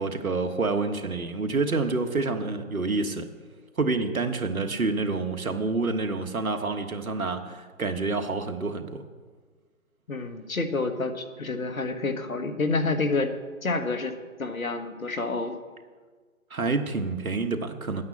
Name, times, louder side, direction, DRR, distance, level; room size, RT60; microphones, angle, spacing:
voice 1, 0.0-3.3 3.8-9.0 16.5-18.0, right 3 dB, 80° right, 7 dB, 1.4 m, -28 dB
voice 2, 10.1-13.3 13.6-15.6, left 3 dB, 75° left, 8 dB, 1.4 m, -28 dB
9.3 x 8.8 x 7.3 m, 1.5 s
figure-of-eight pair, 155°, 42 cm